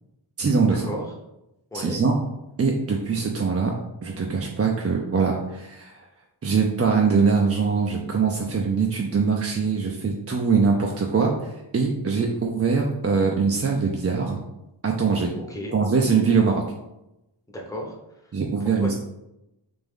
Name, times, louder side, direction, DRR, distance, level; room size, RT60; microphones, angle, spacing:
voice 1, 0.4-0.9 1.7-2.1 2.6-3.7 4.0-6.0 6.4-14.4 14.8-15.3 15.7-16.6 18.3-18.9, right 5 dB, 30° right, 0 dB, 0.4 m, -22 dB
voice 2, 1.7-2.0 15.5-15.8 17.5-18.0 18.6-18.9, left 1 dB, 5° left, -1 dB, 0.7 m, -33 dB
3.4 x 2.9 x 3.6 m, 0.89 s
wide cardioid pair, 75°, 48 cm